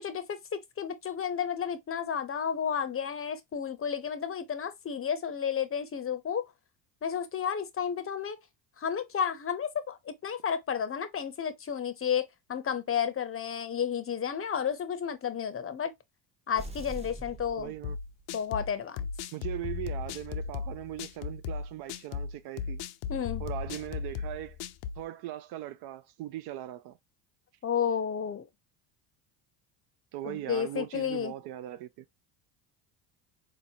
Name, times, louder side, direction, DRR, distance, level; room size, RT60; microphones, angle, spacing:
voice 1, 0.0-6.4 7.0-8.4 8.8-15.9 16.5-17.7 18.3-19.0 23.1-23.4 27.6-28.4 30.2-31.3, left 8 dB, 25° left, 0.7 m, -32 dB
sound 1, 16.6-18.4, right 1 dB, 15° right, 0.8 m, -43 dB
voice 2, 17.6-18.0 19.3-22.8 23.4-24.6 25.0-27.0 30.1-32.1, right 13 dB, 55° right, 0.5 m, -39 dB
sound 2, 17.8-25.0, left 6 dB, 70° left, 0.6 m, -36 dB
3.9 x 2.9 x 2.7 m
hypercardioid pair, 70°, 49 cm